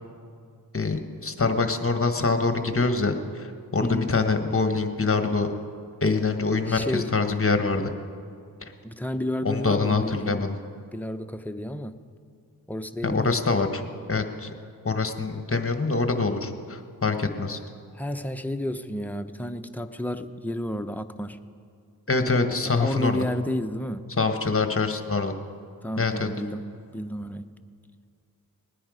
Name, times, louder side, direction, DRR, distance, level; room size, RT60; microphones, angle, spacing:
voice 1, 0.7-5.5 6.0-7.9 9.4-10.6 13.0-13.8 14.1-14.5 14.8-17.6 22.1-23.2 24.2-25.3 26.0-26.3, left 3 dB, 35° left, 7 dB, 1.3 m, -25 dB
voice 2, 3.8-4.1 6.7-7.1 8.8-10.4 10.9-11.9 12.7-13.3 17.9-21.4 22.7-24.0 25.8-27.5, left 1 dB, 5° left, 8 dB, 0.8 m, -31 dB
19.5 x 10.0 x 5.0 m, 2.3 s
cardioid pair, 50°, 39 cm